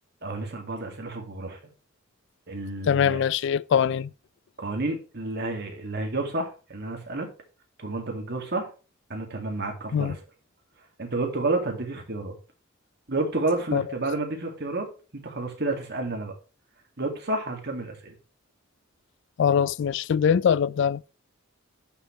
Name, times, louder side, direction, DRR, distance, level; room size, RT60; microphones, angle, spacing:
voice 1, 0.2-1.6 2.5-3.2 4.6-7.3 7.8-8.7 9.1-10.2 11.0-12.4 13.1-14.9 15.1-16.3 17.0-18.1, right 2 dB, 55° right, 2.2 m, -30 dB
voice 2, 2.9-4.1 9.9-10.2 13.7-13.8 19.4-21.0, left 7 dB, 60° left, 0.3 m, -22 dB
11.0 x 6.1 x 3.2 m
head